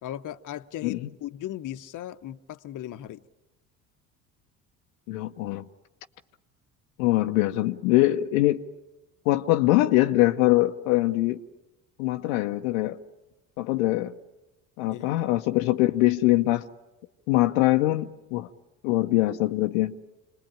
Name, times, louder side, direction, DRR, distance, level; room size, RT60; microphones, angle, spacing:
voice 1, 0.0-3.2 14.9-15.3, left 12 dB, 50° left, 1.0 m, -37 dB
voice 2, 5.1-5.6 7.0-8.6 9.3-11.4 12.0-13.0 13.6-14.1 14.8-16.7 17.3-18.5 18.8-20.0, left 17 dB, 80° left, 0.8 m, -23 dB
27.0 x 20.0 x 8.9 m
hypercardioid pair, 65°, 41 cm